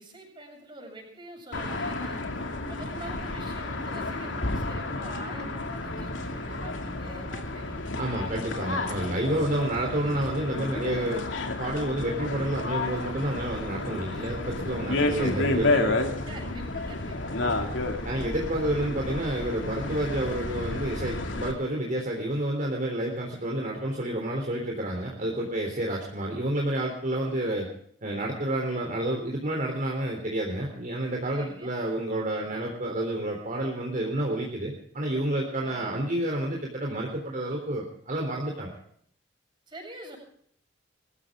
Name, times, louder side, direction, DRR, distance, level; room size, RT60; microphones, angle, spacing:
voice 1, 0.0-2.3 2.7-7.8 16.2-17.4 31.3-31.8 35.6-36.0 39.7-40.2, right 1 dB, 25° right, 1 dB, 7.6 m, -45 dB
sound 1, 1.5-21.5, left 2 dB, 80° left, 2.6 m, -31 dB
voice 2, 8.0-11.2 11.6-16.0 18.0-27.7 28.0-38.7, right 1 dB, 45° right, 0 dB, 3.6 m, -29 dB
22.5 x 15.0 x 3.7 m, 0.64 s
head